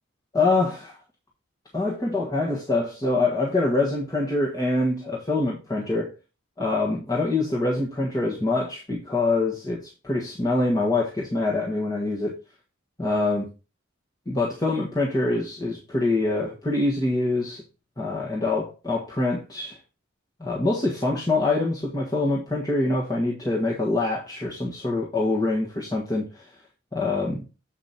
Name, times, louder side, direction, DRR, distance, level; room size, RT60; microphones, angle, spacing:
voice 1, 0.3-1.0 1.7-6.1 6.6-12.4 13.0-13.5 14.3-17.6 18.0-19.8 20.4-26.4 26.9-27.4, left 2 dB, 20° left, 1.5 m, -25 dB
7.9 x 5.2 x 4.1 m
head